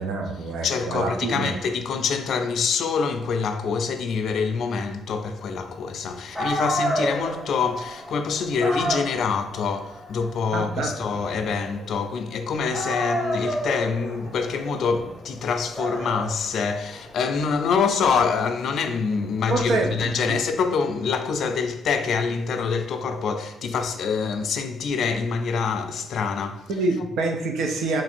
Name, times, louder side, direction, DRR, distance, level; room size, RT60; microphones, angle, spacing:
voice 1, 0.0-1.5 10.5-10.9 19.5-20.4 26.7-28.0, right 3 dB, 85° right, 0.6 m, -26 dB
voice 2, 0.6-26.7, left 5 dB, 60° left, 0.3 m, -25 dB
Dog, 6.0-6.1 6.3-12.4 12.7-19.5, equal, 5° right, 0.7 m, -31 dB
3.2 x 2.5 x 4.2 m
cardioid pair, 155°, 0 cm